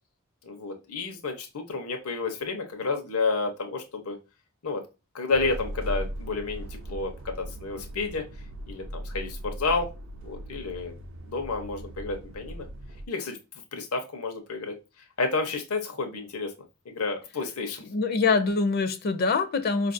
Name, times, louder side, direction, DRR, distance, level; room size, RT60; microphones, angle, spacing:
voice 1, 0.4-4.2 4.6-4.8 5.1-8.2 8.7-9.9 10.2-10.9 11.3-12.7 13.1-13.4 13.7-14.8 15.2-16.5 16.9-17.8, left 3 dB, 90° left, 0.8 m, -30 dB
sound 1, 5.3-13.1, right 1 dB, 60° right, 0.5 m, -38 dB
voice 2, 17.9-19.9, left 4 dB, 45° left, 0.5 m, -24 dB
4.8 x 2.5 x 2.5 m
head